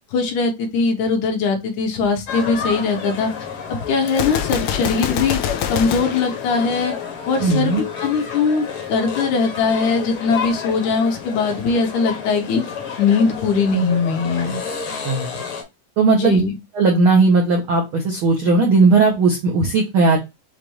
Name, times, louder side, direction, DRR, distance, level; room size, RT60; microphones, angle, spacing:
voice 1, 0.1-3.3 3.7-5.4 5.7-6.9 7.3-12.6 13.0-14.6 16.1-16.5, left 4 dB, 70° left, 4 dB, 2.4 m, -20 dB
sound 1, 2.3-15.6, left 6 dB, 55° left, 1.7 m, -30 dB
Gunshot gunfire, 4.1-7.2, left 9 dB, 85° left, 2.2 m, -26 dB
voice 2, 7.4-7.8 15.0-15.3 16.0-16.4 16.7-20.2, right 3 dB, 70° right, 1 dB, 1.2 m, -16 dB
6.6 x 2.5 x 3.0 m, 0.22 s
omnidirectional pair, 3.7 m